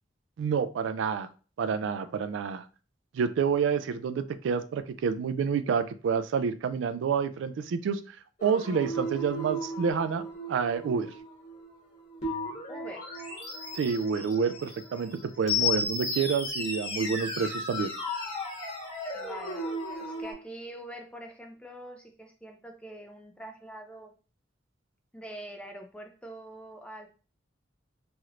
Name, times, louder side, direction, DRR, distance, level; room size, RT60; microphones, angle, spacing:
voice 1, 0.4-1.3 1.6-2.6 3.1-8.0 8.4-11.1 13.7-17.9, right 6 dB, 80° right, 11 dB, 0.3 m, -28 dB
sound 1, 8.4-20.3, left 2 dB, 35° left, 1.1 m, -35 dB
voice 2, 12.7-13.1 19.1-19.6 20.0-24.1 25.1-27.1, right 1 dB, 5° left, 3 dB, 0.4 m, -44 dB
3.1 x 2.9 x 2.4 m, 0.37 s
head